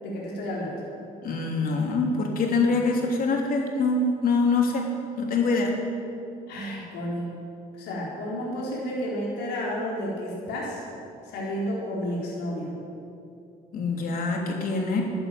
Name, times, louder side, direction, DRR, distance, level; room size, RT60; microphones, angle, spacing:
voice 1, 0.0-0.8 6.5-7.3 7.8-10.8 11.3-12.7, equal, 85° left, -4 dB, 4.4 m, -31 dB
voice 2, 1.2-4.9 5.2-5.7 13.7-15.0, left 3 dB, 60° left, 1 dB, 3.1 m, -24 dB
13.0 x 12.0 x 9.2 m, 2.6 s
cardioid pair, 110°, 17 cm